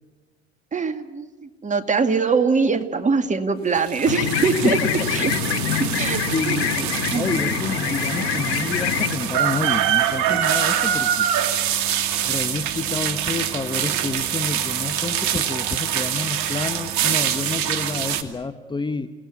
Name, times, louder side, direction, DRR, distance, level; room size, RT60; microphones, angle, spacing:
voice 1, 0.7-1.3 1.6-4.8 5.1-5.3 5.8-6.6 7.1-7.4, right 5 dB, 20° right, 9 dB, 2.3 m, -22 dB
sound 1, 3.7-18.2, right 10 dB, 55° right, 2.4 m, -25 dB
sound 2, 4.1-9.2, left 9 dB, 75° left, 2.1 m, -25 dB
voice 2, 4.6-5.1 5.5-5.7 6.0-11.3 12.2-19.1, left 4 dB, 15° left, 10 dB, 1.0 m, -29 dB
29.0 x 18.5 x 9.6 m, 1.2 s
hypercardioid pair, 90°, 32 cm